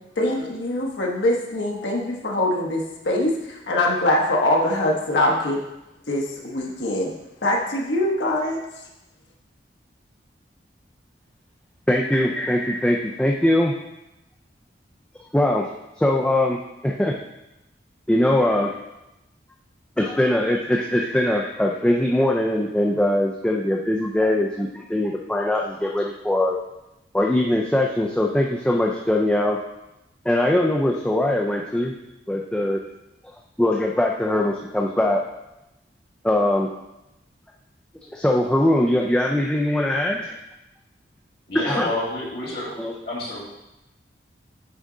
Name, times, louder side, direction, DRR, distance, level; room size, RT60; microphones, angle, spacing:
voice 1, 0.2-5.6 6.1-7.1 7.4-8.6, left 1 dB, 75° left, -2 dB, 0.9 m, -23 dB
voice 2, 11.9-13.7 15.3-15.7 16.0-17.1 18.1-18.8 20.0-26.6 27.1-29.6 30.3-31.9 32.3-32.8 33.6-35.2 36.2-36.7 38.1-40.4 41.5-41.9 42.8-42.9, left 1 dB, 5° left, -1 dB, 0.3 m, -21 dB
voice 3, 41.5-42.7 43.0-43.4, left 1 dB, 55° left, -7 dB, 1.9 m, -28 dB
8.8 x 3.7 x 3.7 m, 0.93 s
head